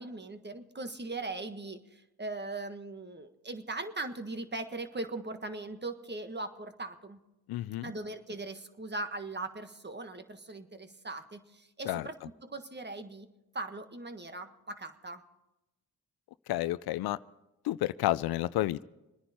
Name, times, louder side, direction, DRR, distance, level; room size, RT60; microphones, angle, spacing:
voice 1, 0.0-7.2 7.8-12.2 12.4-13.3 13.5-15.2, right 2 dB, 30° right, 8 dB, 1.5 m, -40 dB
voice 2, 7.5-7.9 11.9-12.1 16.5-17.2 17.6-18.8, left 15 dB, 80° left, 17 dB, 0.5 m, -30 dB
26.0 x 10.0 x 4.3 m, 0.97 s
supercardioid pair, 55°, 37 cm